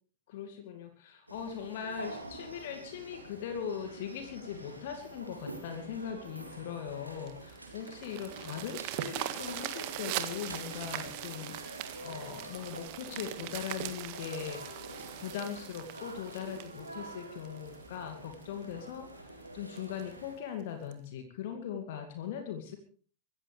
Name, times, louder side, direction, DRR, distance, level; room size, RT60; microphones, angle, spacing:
voice 1, 0.3-14.6 15.2-22.8, left 8 dB, 55° left, 6 dB, 2.3 m, -40 dB
sound 1, 1.3-20.4, right 1 dB, 85° right, 4.0 m, -47 dB
sound 2, 7.3-17.7 18.3-18.4 18.9-19.0 19.3-19.4 19.8-20.0 20.9-21.0, right 14 dB, 45° right, 1.7 m, -41 dB
25.0 x 14.5 x 3.4 m, 0.42 s
figure-of-eight pair, 90°, 0 cm